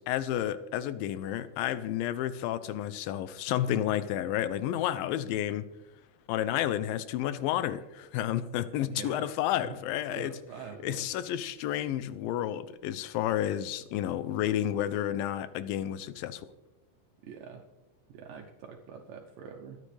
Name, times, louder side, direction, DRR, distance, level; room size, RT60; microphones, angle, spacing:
voice 1, 0.0-5.7 6.3-10.3 10.8-16.5, left 12 dB, 85° left, 2.4 m, -31 dB
voice 2, 8.9-9.3 9.6-9.8 10.0-11.1 17.2-17.6 18.1-19.8, right 7 dB, 75° right, 2.4 m, -44 dB
22.5 x 9.5 x 3.3 m
omnidirectional pair, 4.1 m